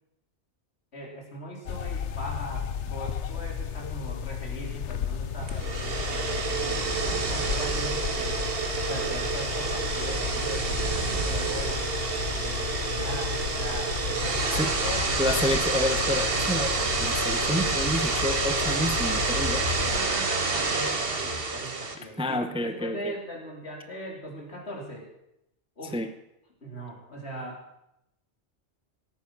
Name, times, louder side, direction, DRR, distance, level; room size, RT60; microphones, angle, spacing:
voice 1, 0.9-8.4 8.9-11.8 12.4-15.1 19.9-25.1 25.8-26.0 26.6-27.6, equal, 70° left, -1 dB, 3.6 m, -39 dB
sound 1, 1.7-20.0, left 7 dB, 90° left, 1.0 m, -34 dB
sound 2, 5.4-22.0, right 4 dB, 60° right, 1.6 m, -28 dB
voice 2, 15.2-19.7 22.2-23.1 25.9-26.1, left 1 dB, 5° right, 9 dB, 0.6 m, -29 dB
17.0 x 9.1 x 6.0 m, 0.84 s
omnidirectional pair, 1.2 m